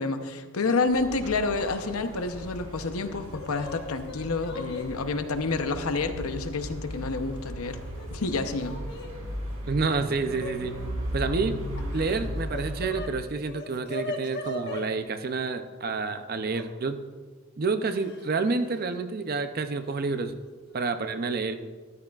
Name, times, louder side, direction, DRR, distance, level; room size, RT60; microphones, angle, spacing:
voice 1, 0.0-7.8 8.1-8.8, left 3 dB, 85° left, 8 dB, 0.8 m, -29 dB
sound 1, 0.8-13.0, equal, 65° right, 3.6 m, -37 dB
Yell / Crying sobbing, 1.6-1.9 2.2-2.3 3.1-4.9 5.8-5.9 6.9-7.5 7.8-9.1 10.3-10.6 11.7-13.1 13.4-14.9 16.5-16.7 17.9-18.3 18.6-18.8 19.9-20.0 20.4-20.7, left 1 dB, 50° left, 1.3 m, -39 dB
voice 2, 9.7-10.8 11.1-11.6 11.9-17.0 17.6-20.4 20.7-21.5, right 4 dB, 45° right, 9 dB, 0.5 m, -29 dB
13.5 x 13.0 x 2.4 m, 1.5 s
head